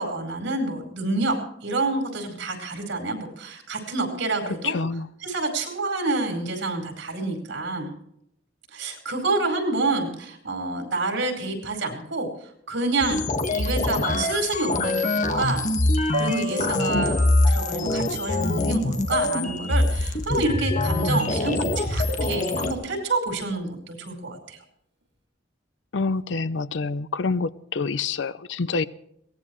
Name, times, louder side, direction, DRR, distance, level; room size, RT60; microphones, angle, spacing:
voice 1, 0.0-1.4 1.6-4.7 5.2-7.9 8.7-12.3 12.7-13.2 13.5-15.7 16.2-17.2 17.5-24.6, right 2 dB, 80° right, 3 dB, 4.8 m, -28 dB
voice 2, 4.5-5.1 16.9-17.0 25.9-28.8, left 4 dB, 70° left, 16 dB, 0.6 m, -27 dB
sound 1, 13.0-22.7, left 2 dB, 45° left, 1.6 m, -24 dB
sound 2, 16.1-19.2, left 1 dB, 60° right, 7.1 m, -36 dB
22.5 x 18.0 x 3.2 m, 0.76 s
head